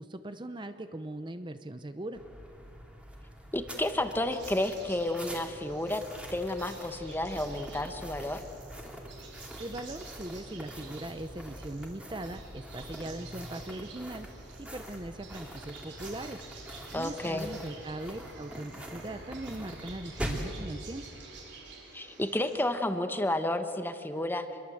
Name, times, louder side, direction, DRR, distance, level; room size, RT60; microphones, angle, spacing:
voice 1, 0.0-2.2 9.6-14.3 14.6-16.4 16.9-21.1, right 1 dB, 25° right, 9 dB, 0.7 m, -40 dB
sound 1, 2.1-20.6, equal, 5° right, 2.7 m, -44 dB
voice 2, 3.5-6.0 6.3-8.4 16.9-17.5 21.9-24.5, left 1 dB, 10° left, 8 dB, 1.2 m, -31 dB
sound 2, 4.2-22.6, right 4 dB, 75° right, 4.3 m, -51 dB
27.0 x 22.0 x 7.9 m, 2.7 s
head